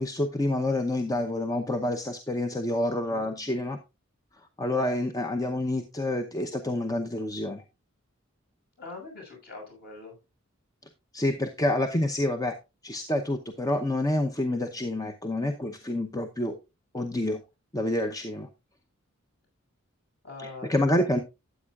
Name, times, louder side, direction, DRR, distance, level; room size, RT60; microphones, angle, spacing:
voice 1, 0.0-3.8 4.6-7.6 11.1-12.6 12.8-16.6 16.9-17.4 17.7-18.5 20.4-21.2, left 1 dB, 15° left, 5 dB, 0.7 m, -28 dB
voice 2, 8.8-10.1 20.2-21.2, left 3 dB, 50° left, 0 dB, 6.4 m, -43 dB
13.0 x 8.5 x 2.4 m, 0.26 s
head